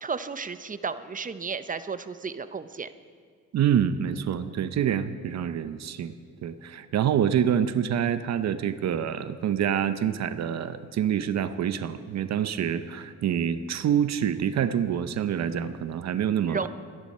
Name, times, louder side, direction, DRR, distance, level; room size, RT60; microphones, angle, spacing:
voice 1, 0.0-2.9 16.5-16.7, right 5 dB, 25° right, 12 dB, 0.7 m, -33 dB
voice 2, 3.5-6.1 6.4-16.7, right 9 dB, 60° right, 12 dB, 0.8 m, -26 dB
24.0 x 10.5 x 4.3 m, 2.1 s
cardioid pair, 90°, 30 cm